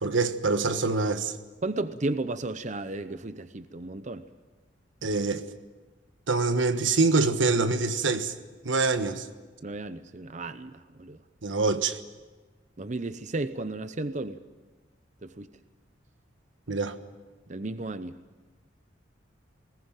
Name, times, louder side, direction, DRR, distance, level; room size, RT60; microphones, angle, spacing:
voice 1, 0.0-1.3 5.0-5.4 6.3-8.3 8.6-9.3 11.4-12.0 16.7-16.9, right 3 dB, 90° right, 1.4 m, -25 dB
voice 2, 1.6-4.3 9.6-11.2 12.8-14.4 15.2-15.5 17.5-18.1, right 2 dB, 40° right, 0.8 m, -34 dB
20.5 x 19.0 x 9.0 m
head